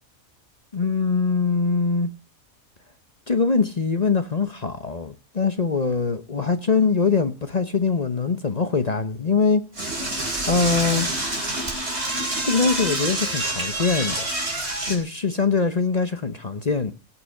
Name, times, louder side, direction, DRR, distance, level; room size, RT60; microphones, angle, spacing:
voice 1, 0.7-2.1 3.3-9.6 10.5-11.1 12.4-14.3 14.7-16.9, left 4 dB, 35° left, 0.8 m, -23 dB
Door / Toilet flush, 9.7-15.0, right 1 dB, 55° right, 4.2 m, -27 dB
18.0 x 6.0 x 6.5 m
omnidirectional pair, 1.4 m